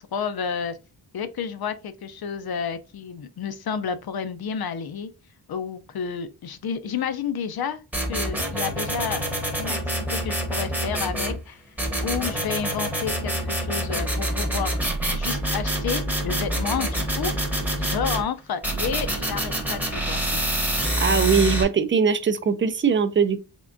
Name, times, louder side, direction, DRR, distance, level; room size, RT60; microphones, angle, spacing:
voice 1, 0.1-0.8 1.1-5.1 5.5-7.8 8.1-9.2 9.6-11.6 12.0-14.8 15.1-17.3 17.8-20.4, left 7 dB, 60° left, 0.5 m, -30 dB
sound 1, 7.9-11.4 11.8-18.2 18.6-21.6, right 1 dB, 5° right, 0.9 m, -26 dB
voice 2, 21.0-23.4, right 6 dB, 30° right, 0.4 m, -21 dB
3.6 x 3.3 x 2.5 m
wide cardioid pair, 105°, 42 cm